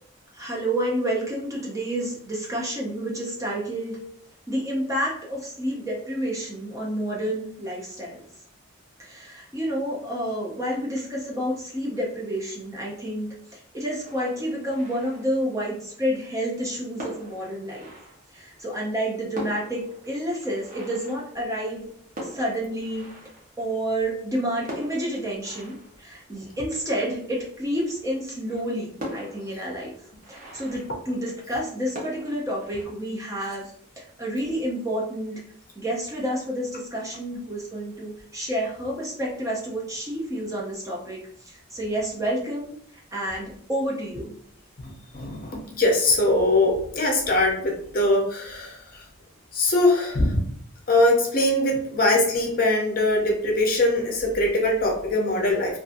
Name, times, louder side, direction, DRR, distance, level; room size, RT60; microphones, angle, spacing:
voice 1, 0.3-4.0 4.5-8.2 9.0-17.9 18.3-21.9 22.2-23.1 23.6-29.9 30.3-33.6 34.0-35.4 35.8-44.3, equal, 15° right, -3 dB, 0.5 m, -29 dB
sound 1, 14.0-15.8 16.6-16.7 17.0-18.7 19.0-19.1 19.3-24.1 24.6-27.2 27.8-27.9 28.2-28.3 29.0-31.6 31.9-32.8, equal, 40° right, 0.8 m, -42 dB
voice 2, 44.8-49.0 49.5-50.4 50.9-55.8, left 1 dB, 40° left, 0 dB, 0.5 m, -22 dB
2.6 x 2.4 x 2.5 m, 0.66 s
head